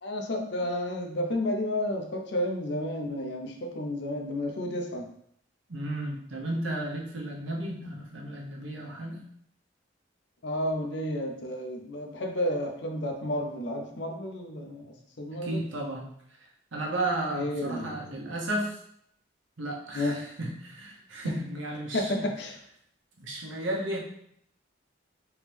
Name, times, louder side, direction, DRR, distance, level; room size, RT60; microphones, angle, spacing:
voice 1, 0.0-5.1 10.4-15.6 17.3-18.0 19.9-20.2 21.2-21.3 21.9-22.6, left 1 dB, 65° left, 3 dB, 0.6 m, -31 dB
voice 2, 5.7-9.2 15.4-16.0 16.7-18.8 19.6-22.3 23.2-24.0, right 1 dB, 85° right, -1 dB, 0.9 m, -33 dB
3.5 x 3.0 x 3.3 m, 0.69 s
head